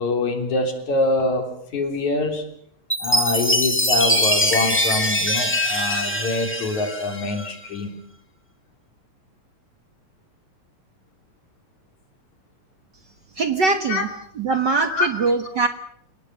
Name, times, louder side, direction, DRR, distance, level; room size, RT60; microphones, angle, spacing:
voice 1, 0.0-1.5 1.7-2.5 3.0-7.9 13.9-14.1 14.9-15.1 15.5-15.7, left 2 dB, 75° left, 5 dB, 4.8 m, -24 dB
Chime, 2.9-7.5, equal, 5° left, 2.1 m, -22 dB
voice 2, 13.4-14.1 14.4-15.7, right 4 dB, 50° right, 8 dB, 1.5 m, -21 dB
30.0 x 18.0 x 6.9 m, 0.66 s
omnidirectional pair, 3.3 m